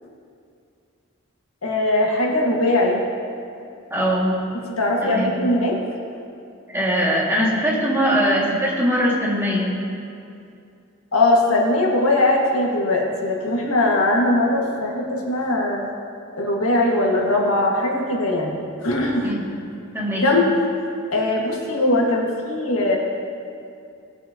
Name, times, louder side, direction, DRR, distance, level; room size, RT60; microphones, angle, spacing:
voice 1, 1.6-3.0 4.8-5.8 11.1-15.9 16.3-19.3 20.1-20.5 21.1-23.0, left 1 dB, 80° left, -1 dB, 1.7 m, -20 dB
voice 2, 3.9-4.3 5.0-5.3 6.7-9.7 19.2-19.5 19.9-20.3, equal, 10° right, -5 dB, 2.0 m, -21 dB
18.5 x 8.9 x 2.9 m, 2.5 s
head